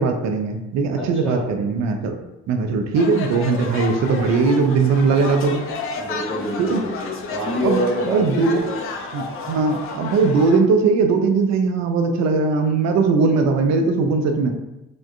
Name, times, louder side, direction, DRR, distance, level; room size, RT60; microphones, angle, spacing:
voice 1, 0.0-2.1 2.5-5.7 6.6-6.8 7.6-7.8 8.1-8.7 9.1-14.5, right 4 dB, 50° right, 5 dB, 0.5 m, -19 dB
voice 2, 1.0-1.4 6.0-8.8, equal, 5° left, -6 dB, 1.0 m, -26 dB
sound 1, 2.9-10.6, left 4 dB, 40° left, 0.4 m, -31 dB
3.3 x 2.1 x 2.4 m, 0.95 s
figure-of-eight pair, 45°, 36 cm